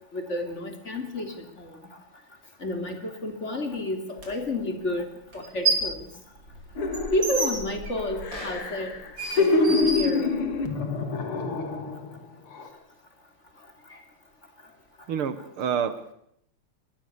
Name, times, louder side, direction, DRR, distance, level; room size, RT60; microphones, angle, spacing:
voice 1, 0.1-1.7 2.6-5.1 5.3-6.1 7.1-8.9 9.3-10.4, left 1 dB, 30° left, 5 dB, 3.3 m, -30 dB
sound 1, 4.2-4.3 5.3-6.0 6.4-10.7, right 3 dB, 60° right, 5.3 m, -30 dB
sound 2, 6.8-7.6 8.0-12.1 12.5-12.7, left 3 dB, 85° left, 3.3 m, -26 dB
voice 2, 15.1-16.1, right 7 dB, 80° right, 13 dB, 2.4 m, -28 dB
23.5 x 20.0 x 6.9 m, 0.71 s
omnidirectional pair, 2.4 m